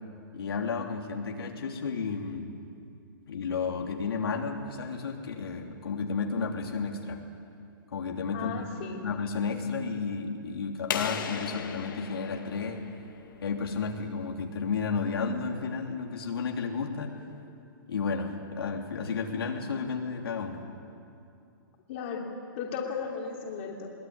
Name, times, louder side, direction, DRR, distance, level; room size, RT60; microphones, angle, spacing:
voice 1, 0.3-2.5 3.3-7.2 7.9-8.6 8.9-12.8 13.4-17.2 17.9-20.6, left 5 dB, 90° left, 1 dB, 3.3 m, -32 dB
voice 2, 8.3-9.0 21.9-22.3 22.6-23.9, left 6 dB, 30° left, 0 dB, 2.9 m, -35 dB
sound 1, 10.9-13.5, left 7 dB, 65° left, 2.1 m, -36 dB
23.0 x 18.0 x 9.6 m, 2.6 s
hypercardioid pair, 175°, 12 cm